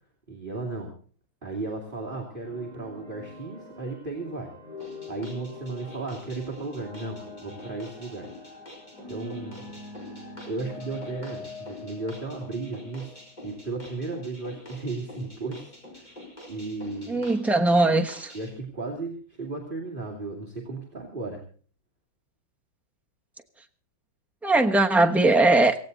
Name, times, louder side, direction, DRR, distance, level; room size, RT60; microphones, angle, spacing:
voice 1, 0.3-0.9 1.4-4.5 5.1-8.6 9.1-9.7 10.5-16.1 16.5-17.3 18.3-21.4, right 3 dB, 25° right, 2.6 m, -35 dB
sound 1, 2.4-13.6, left 3 dB, 55° left, 6.6 m, -44 dB
sound 2, 4.8-18.5, left 1 dB, 20° left, 4.6 m, -46 dB
voice 2, 17.1-18.3 24.4-25.7, right 2 dB, ahead, 0.5 m, -20 dB
18.0 x 16.0 x 4.0 m
omnidirectional pair, 2.1 m